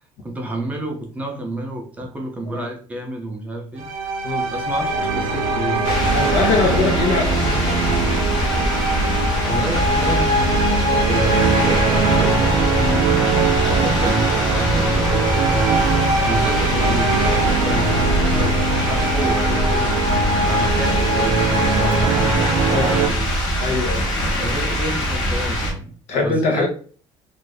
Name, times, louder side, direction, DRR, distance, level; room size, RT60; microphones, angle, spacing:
voice 1, 0.2-3.9 4.5-6.9 9.4-15.7 16.2-20.0 20.3-22.3 22.8-23.3 24.2-26.7, right 1 dB, 15° right, 1 dB, 0.5 m, -30 dB
sound 1, 3.8-23.1, right 3 dB, 70° right, 0.6 m, -21 dB
sound 2, 5.8-25.7, equal, 40° left, 1.0 m, -22 dB
voice 2, 6.1-7.8 12.8-13.0 15.8-15.9 22.7-22.9 23.6-24.1 26.1-26.7, left 3 dB, 75° left, 2 dB, 0.9 m, -22 dB
2.6 x 2.5 x 3.3 m, 0.42 s
cardioid pair, 175°, 11 cm